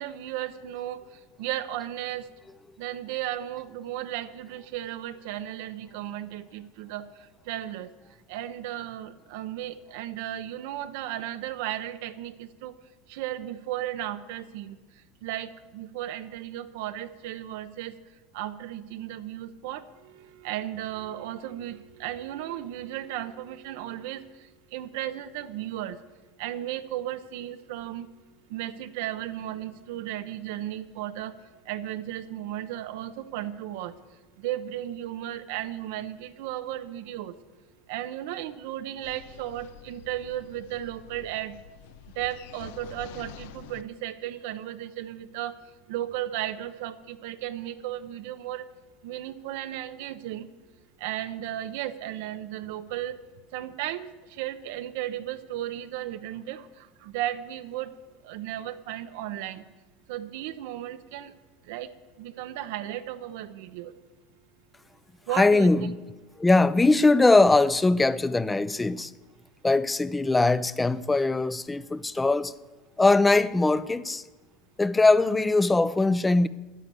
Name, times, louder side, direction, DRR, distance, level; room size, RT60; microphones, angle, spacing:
voice 1, 0.0-2.3 2.8-7.9 8.3-12.8 13.1-14.8 15.2-17.9 18.3-26.0 26.4-28.1 28.5-31.4 31.6-34.0 34.4-37.4 37.9-41.6 42.1-48.7 49.0-50.5 51.0-53.2 53.5-57.9 58.2-59.7 60.1-61.3 61.6-61.9 62.2-63.9 65.3-65.9, right 12 dB, 70° right, 0.8 m, -35 dB
sound 1, 39.0-43.8, left 9 dB, 75° left, 0.7 m, -47 dB
voice 2, 65.3-65.9 66.4-69.1 69.6-72.5 73.0-74.2 74.8-76.5, left 3 dB, 15° left, 0.6 m, -21 dB
9.9 x 9.9 x 7.7 m
hypercardioid pair, 90°, 0 cm